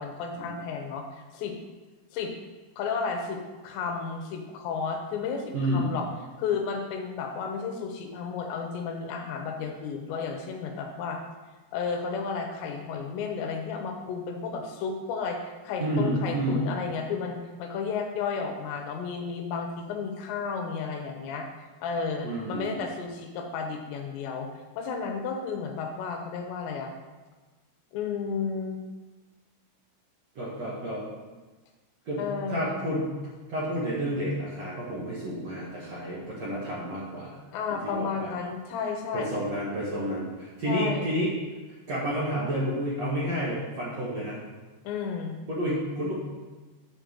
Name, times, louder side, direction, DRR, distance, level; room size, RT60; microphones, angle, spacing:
voice 1, 0.0-1.5 2.1-2.3 2.8-6.1 6.4-11.2 11.7-21.5 21.8-24.5 24.7-26.9 27.9-28.8 32.2-32.9 37.5-39.3 40.6-41.2 44.8-45.4, left 5 dB, 90° left, 3 dB, 3.3 m, -32 dB
voice 2, 5.5-5.9 15.8-16.6 22.2-22.8 30.4-31.0 32.1-33.1 33.5-37.4 38.0-38.4 39.1-41.3 41.9-44.4 45.5-46.1, equal, 55° right, -7 dB, 2.1 m, -30 dB
7.4 x 5.1 x 6.4 m, 1.3 s
omnidirectional pair, 4.9 m